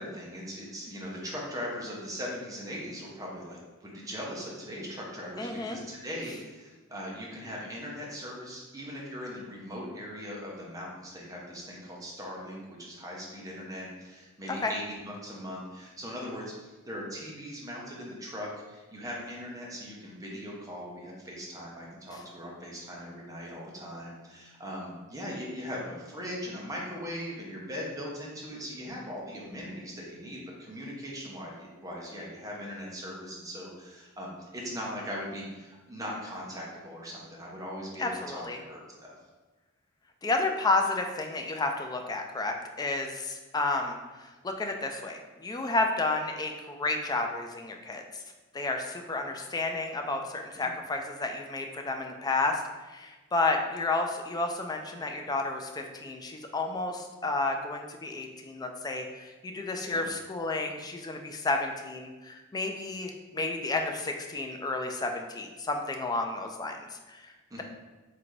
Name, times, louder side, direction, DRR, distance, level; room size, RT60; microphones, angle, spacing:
voice 1, 0.0-39.2 50.5-50.7 59.8-60.1 67.5-67.6, equal, 15° right, -3 dB, 0.8 m, -40 dB
voice 2, 5.4-5.8 14.5-14.7 38.0-38.6 40.2-48.2 48.5-67.3, left 3 dB, 20° left, 4 dB, 0.3 m, -31 dB
3.8 x 3.3 x 3.2 m, 1.2 s
head